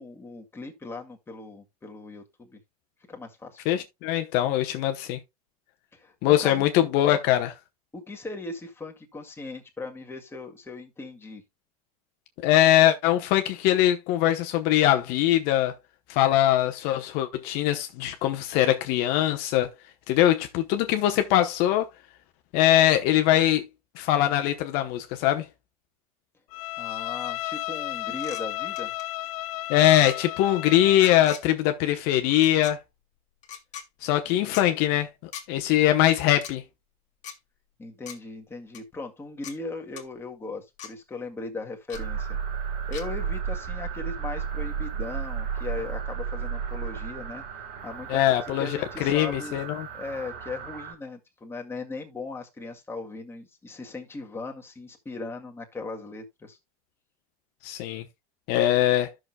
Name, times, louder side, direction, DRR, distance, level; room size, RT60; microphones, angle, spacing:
voice 1, 0.0-2.6 3.1-3.6 5.9-6.6 7.9-11.4 26.8-28.9 34.3-34.7 37.8-42.4 42.9-47.4 47.8-49.6 49.9-56.6, left 3 dB, 10° left, 2.0 m, -38 dB
voice 2, 3.6-5.2 6.2-7.5 12.4-15.7 16.1-19.7 20.1-21.9 22.5-23.7 24.0-25.5 29.7-32.8 34.0-35.1 35.5-36.6 48.1-49.9 57.6-58.0 58.5-59.1, left 13 dB, 60° left, 1.0 m, -22 dB
Bowed string instrument, 26.5-31.4, left 17 dB, 75° left, 0.5 m, -34 dB
sound 1, 28.2-28.4 28.8-29.0 29.9-30.2 31.2-31.4 32.3-32.7 33.4-33.9 34.5-34.7 35.3-35.5 36.3-36.5 37.2-37.4 38.1-38.2 38.7-38.8 39.4-39.6 40.0-40.1 40.8-40.9 41.9-42.0 42.9-43.0, left 9 dB, 40° left, 1.9 m, -40 dB
sound 2, 41.9-50.9, right 7 dB, 55° right, 4.0 m, -33 dB
14.0 x 6.3 x 2.2 m
supercardioid pair, 115°, 19 cm